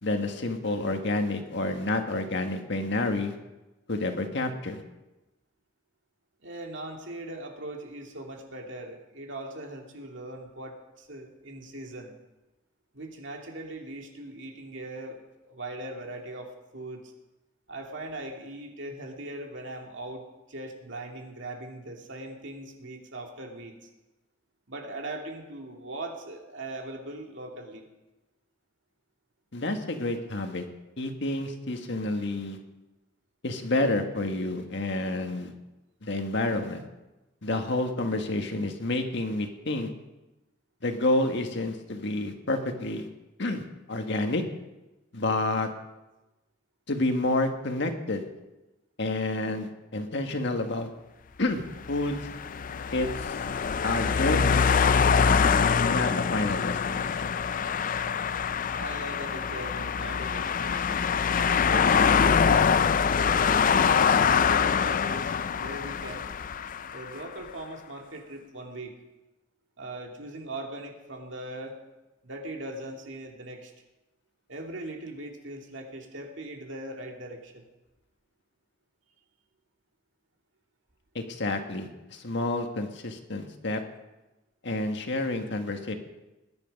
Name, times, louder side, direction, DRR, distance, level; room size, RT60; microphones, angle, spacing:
voice 1, 0.0-3.3 3.9-4.8 29.5-30.6 31.0-32.6 33.4-35.5 36.0-36.8 37.4-39.9 40.8-43.1 43.4-44.4 45.1-45.7 46.9-48.2 49.0-50.9 51.4-51.6 51.9-52.2 52.9-53.4 53.8-54.6 55.8-57.4 81.1-83.8 84.6-85.9, left 2 dB, 65° left, 5 dB, 1.7 m, -29 dB
voice 2, 6.4-12.2 12.9-15.2 15.4-17.1 17.7-23.8 24.7-27.8 58.7-61.1 61.5-62.7 63.4-66.3 66.9-69.0 69.8-71.8 72.2-73.7 74.5-77.7, right 1 dB, 70° right, 1 dB, 2.6 m, -40 dB
sound 1, 51.8-67.2, left 6 dB, 45° left, 0.4 m, -24 dB
20.0 x 10.5 x 5.3 m, 1.0 s
head